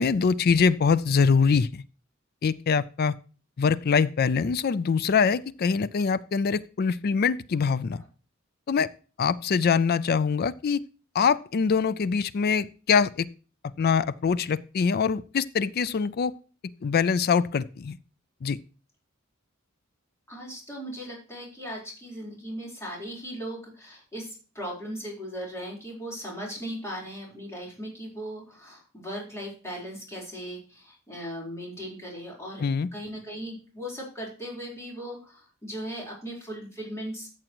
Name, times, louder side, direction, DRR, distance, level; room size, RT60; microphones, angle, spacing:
voice 1, 0.0-1.8 2.4-3.1 3.6-8.0 8.7-8.9 9.2-10.8 11.1-13.3 13.8-16.3 16.8-18.0 18.4-18.6 32.6-32.9, left 5 dB, 45° left, 18 dB, 0.4 m, -24 dB
voice 2, 20.3-32.6 32.9-37.3, equal, 15° left, -3 dB, 4.0 m, -38 dB
13.5 x 7.4 x 3.0 m, 0.36 s
head